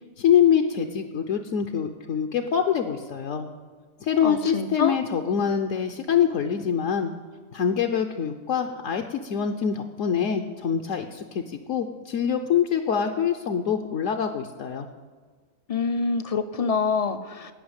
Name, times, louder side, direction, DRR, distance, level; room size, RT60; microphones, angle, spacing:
voice 1, 0.2-3.5 4.0-7.1 7.5-14.9, left 8 dB, 70° left, 4 dB, 1.1 m, -25 dB
voice 2, 4.2-5.0 15.7-17.5, left 5 dB, 50° left, 9 dB, 0.4 m, -26 dB
17.0 x 5.6 x 8.7 m, 1.5 s
omnidirectional pair, 1.4 m